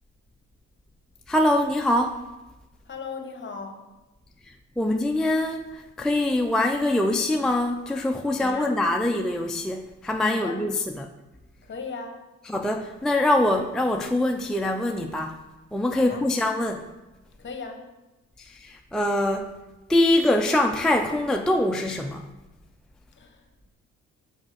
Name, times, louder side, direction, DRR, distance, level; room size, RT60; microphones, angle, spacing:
voice 1, 1.3-2.2 4.8-11.1 12.4-15.4 15.7-16.9 18.4-19.5 19.9-22.3, left 1 dB, ahead, 3 dB, 0.4 m, -24 dB
voice 2, 2.9-3.8 8.4-8.8 10.3-10.6 11.6-12.2 15.9-16.2 17.4-17.8 23.2-23.4, left 4 dB, 40° left, 4 dB, 1.2 m, -36 dB
6.3 x 4.1 x 6.3 m, 1.1 s
cardioid pair, 90°, 30 cm